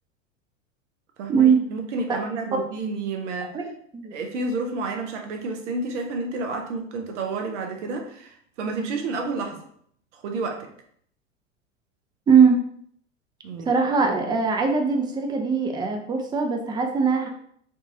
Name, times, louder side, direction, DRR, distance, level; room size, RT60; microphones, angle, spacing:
voice 1, 1.2-3.6 4.1-9.6 10.1-10.7 13.4-13.7, right 3 dB, 65° right, 4 dB, 0.8 m, -30 dB
voice 2, 3.5-4.1 12.3-12.6 13.7-17.3, right 6 dB, 10° right, 3 dB, 0.4 m, -21 dB
3.9 x 2.4 x 2.7 m, 0.65 s
hypercardioid pair, 90°, 38 cm